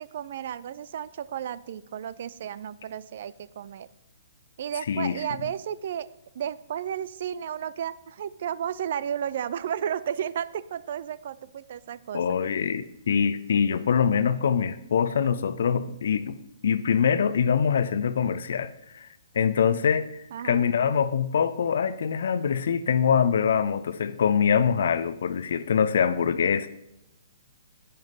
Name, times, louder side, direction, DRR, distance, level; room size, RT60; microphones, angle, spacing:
voice 1, 0.0-3.9 4.6-6.1 6.3-12.2 20.3-20.6, right 9 dB, 45° right, 18 dB, 0.5 m, -33 dB
voice 2, 4.9-5.2 12.1-16.4 16.6-19.1 19.3-26.7, left 7 dB, 55° left, 14 dB, 0.7 m, -24 dB
11.0 x 10.5 x 4.0 m, 0.85 s
figure-of-eight pair, 120°, 0 cm